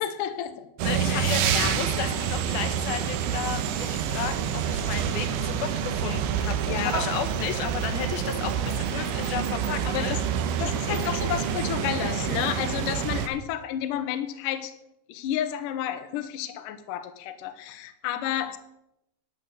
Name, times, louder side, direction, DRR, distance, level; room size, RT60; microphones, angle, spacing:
voice 1, 0.0-2.2 6.7-7.1 8.9-9.1 9.9-10.2 10.6-14.7 15.1-18.6, left 10 dB, 85° left, 9 dB, 1.9 m, -31 dB
voice 2, 0.8-10.1 10.7-11.2, left 9 dB, 70° left, 7 dB, 2.5 m, -33 dB
sound 1, 0.8-13.3, right 8 dB, 85° right, 3.4 m, -27 dB
11.5 x 8.4 x 8.0 m, 0.81 s
omnidirectional pair, 5.2 m